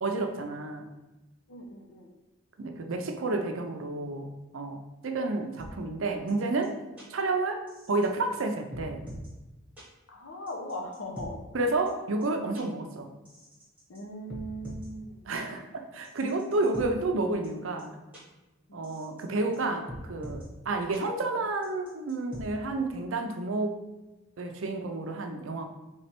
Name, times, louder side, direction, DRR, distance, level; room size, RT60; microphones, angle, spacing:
voice 1, 0.0-0.9 2.6-4.8 5.0-6.7 7.1-9.0 11.5-13.1 15.3-18.0 18.7-23.8 24.4-25.7, right 2 dB, 65° right, 5 dB, 0.5 m, -30 dB
voice 2, 1.5-2.1 10.1-11.4 13.9-15.2 16.7-16.8 18.7-18.8, equal, 70° left, 1 dB, 0.8 m, -39 dB
sound 1, 5.6-5.7 6.3-6.4 6.6-6.7 7.0-7.1 7.7-8.1 8.4-8.5 8.7-9.3 9.8-9.9 10.5-11.3 11.9-12.0 12.2-12.3 12.5-12.6 13.3-14.0 14.3-14.9 15.3-15.4 16.0-16.9 17.4-17.5 17.8-17.9 18.1-18.2 18.8-19.2 19.5-19.6 19.9-20.4 20.9-21.0 21.6-22.4, equal, 5° right, 1.1 m, -43 dB
3.3 x 3.2 x 4.3 m, 1.1 s
head